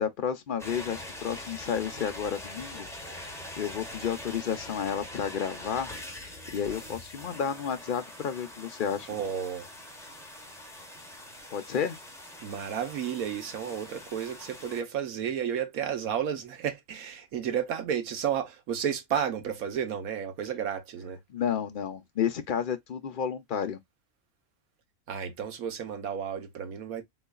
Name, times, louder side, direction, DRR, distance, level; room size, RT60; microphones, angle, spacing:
voice 1, 0.0-5.9 6.5-9.1 11.5-12.0 21.3-23.8, left 7 dB, 55° left, 0.6 m, -31 dB
sound 1, 0.6-14.8, left 1 dB, ahead, 0.8 m, -43 dB
voice 2, 9.1-9.7 12.4-21.2 25.1-27.0, right 8 dB, 80° right, 1.4 m, -32 dB
3.8 x 3.1 x 2.2 m
omnidirectional pair, 1.5 m